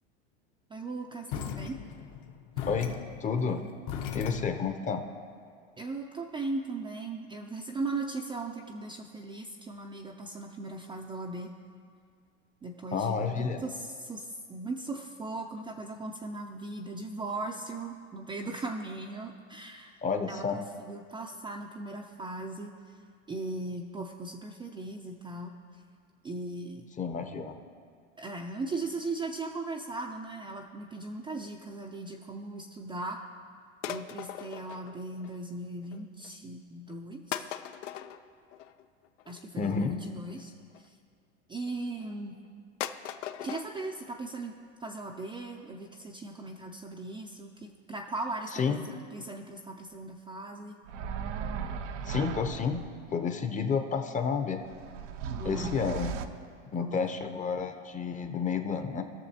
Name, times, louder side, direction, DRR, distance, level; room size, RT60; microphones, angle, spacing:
voice 1, 0.7-1.8 5.8-11.5 12.6-20.0 20.3-23.0 23.3-25.5 26.2-26.9 28.2-33.2 33.9-37.5 39.3-40.5 40.8-40.9 41.5-42.3 43.4-44.5 44.8-48.8 49.1-50.8 55.4-55.8 56.8-57.0, right 2 dB, 15° right, 0 dB, 0.4 m, -38 dB
sound 1, 1.3-4.8, left 8 dB, 50° left, 0.9 m, -38 dB
voice 2, 3.2-3.6 4.1-5.0 12.9-13.6 20.0-20.6 27.0-27.6 39.6-40.0 48.5-48.8 52.0-52.8 53.1-54.6 55.4-56.2 56.7-59.0, left 5 dB, 20° left, 7 dB, 0.7 m, -30 dB
sound 2, 33.8-35.5 35.8-36.3 36.9-37.0 37.3-40.9 41.6-42.1 42.4-42.5 42.8-43.7 44.0-44.1 44.4-44.5 44.8-44.9 45.2-45.3 45.6-45.7 46.0-46.1 46.5-46.6 46.9-47.0, left 11 dB, 80° left, 0.6 m, -40 dB
sound 3, 50.9-52.9 54.5-56.3, right 6 dB, 75° right, 0.7 m, -36 dB
18.5 x 6.6 x 2.8 m, 2.2 s
hypercardioid pair, 110°, 37 cm